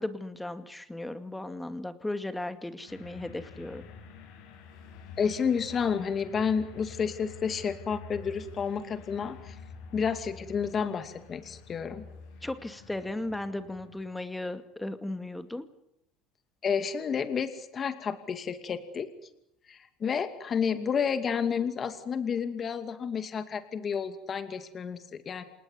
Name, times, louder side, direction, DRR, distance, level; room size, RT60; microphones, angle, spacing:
voice 1, 0.0-3.9 12.4-15.7, left 2 dB, 5° left, 10 dB, 2.3 m, -36 dB
sound 1, 2.9-14.3, left 5 dB, 75° left, 7.4 m, -48 dB
voice 2, 5.2-9.6 9.9-12.0 16.6-19.1 19.7-25.4, left 6 dB, 30° left, 9 dB, 2.4 m, -30 dB
28.0 x 19.0 x 9.7 m, 0.80 s
supercardioid pair, 125°, 0 cm